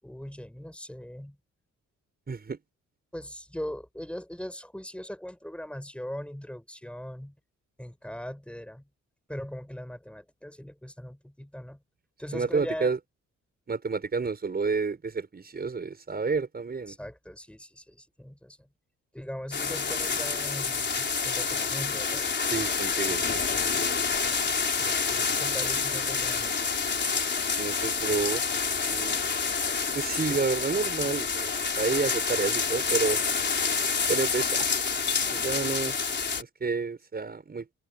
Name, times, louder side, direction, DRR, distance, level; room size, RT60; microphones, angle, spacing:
voice 1, 0.0-1.4 3.1-7.4 7.8-8.9 9.3-11.8 12.2-12.9 16.9-18.7 19.1-22.3 24.7-26.6, equal, 5° left, 7.5 m, -40 dB
voice 2, 2.3-2.6 12.3-13.0 13.7-17.0 22.4-23.4 27.6-28.4 28.9-29.2 29.9-31.5 31.8-33.2 34.1-34.7 35.3-36.0 36.3-37.7, right 4 dB, 30° right, 6.2 m, -30 dB
sound 1, 19.5-36.4, left 5 dB, 35° left, 4.2 m, -28 dB
cardioid pair, 90°, 30 cm